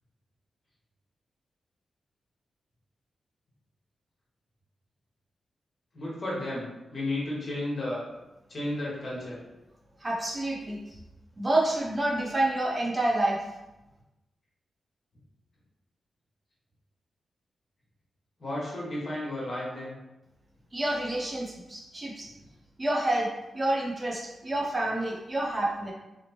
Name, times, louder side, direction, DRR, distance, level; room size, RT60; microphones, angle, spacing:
voice 1, 5.9-8.0 8.5-9.4 18.4-20.0, left 1 dB, 50° left, -6 dB, 1.2 m, -33 dB
voice 2, 10.0-10.8 11.4-13.4 20.7-22.3 22.8-23.3 23.5-25.9, right 1 dB, 30° right, -3 dB, 0.6 m, -28 dB
2.9 x 2.1 x 2.9 m, 1.0 s
cardioid pair, 65°, 0 cm